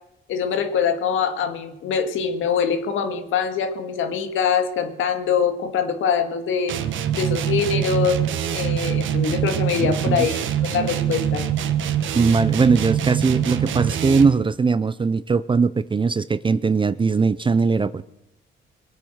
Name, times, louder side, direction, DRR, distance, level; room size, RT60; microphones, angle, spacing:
voice 1, 0.3-6.7 7.1-8.2 8.5-11.5, left 6 dB, 85° left, 2.0 m, -23 dB
sound 1, 6.7-14.4, right 10 dB, 75° right, 1.4 m, -24 dB
voice 2, 12.1-18.0, right 4 dB, 25° right, 0.6 m, -20 dB
23.0 x 8.6 x 6.4 m
cardioid pair, 90°, 20 cm